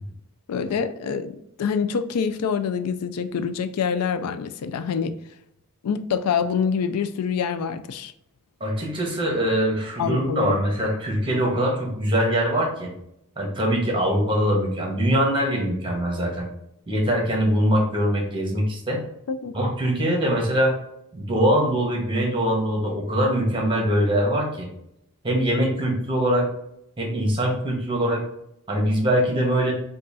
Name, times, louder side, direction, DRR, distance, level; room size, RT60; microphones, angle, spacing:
voice 1, 0.5-1.3 1.6-5.1 5.8-8.1 10.0-10.6 19.3-19.5, left 6 dB, 85° left, 0.4 m, -26 dB
voice 2, 8.6-12.9 13.4-16.5 16.9-19.0 19.5-20.7 21.1-24.7 25.2-26.5 27.0-28.2 28.7-29.7, equal, 20° right, 1.1 m, -22 dB
5.3 x 2.4 x 2.6 m
head